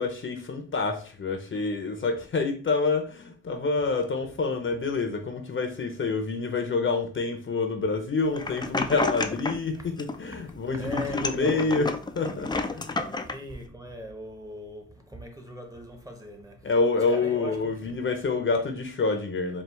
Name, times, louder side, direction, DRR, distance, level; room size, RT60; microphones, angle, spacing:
voice 1, 0.0-13.0 16.6-19.6, left 4 dB, 40° left, 0.7 m, -27 dB
sound 1, 8.3-9.7 10.0-10.6 10.8-13.4, left 3 dB, 15° left, 0.3 m, -30 dB
voice 2, 10.3-12.0 13.3-18.0, left 1 dB, 10° right, 0.8 m, -40 dB
4.3 x 2.3 x 3.4 m
cardioid pair, 95°, 30 cm